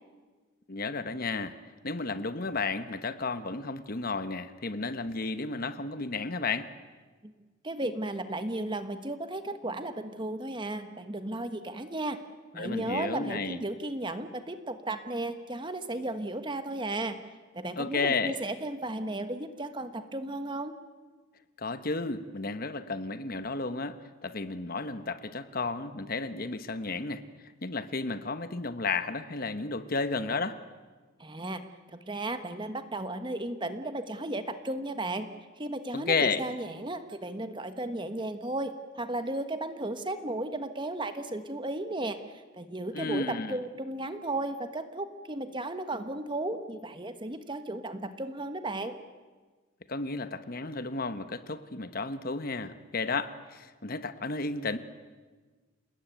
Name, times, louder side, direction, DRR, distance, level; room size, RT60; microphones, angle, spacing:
voice 1, 0.7-1.6 1.8-6.7 12.6-13.6 17.8-18.4 21.6-30.6 35.9-36.5 42.9-43.6 49.9-54.8, left 3 dB, 45° left, 11 dB, 1.1 m, -32 dB
voice 2, 7.6-12.2 12.5-17.2 17.5-20.7 31.2-31.6 31.9-35.3 35.6-42.2 42.5-48.9, right 2 dB, 25° right, 9 dB, 1.3 m, -34 dB
28.5 x 19.5 x 9.2 m, 1.4 s
head